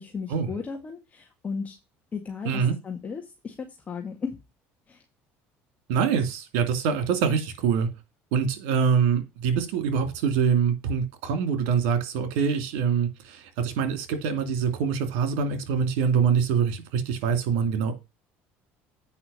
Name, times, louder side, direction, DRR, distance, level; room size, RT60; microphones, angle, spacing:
voice 1, 0.0-1.8 2.1-4.4 4.9-5.0, left 5 dB, 25° left, 1.9 m, -35 dB
voice 2, 2.4-2.7 5.9-7.9 8.3-17.9, right 6 dB, 80° right, 2.6 m, -24 dB
8.6 x 5.6 x 5.6 m
supercardioid pair, 105°, 6 cm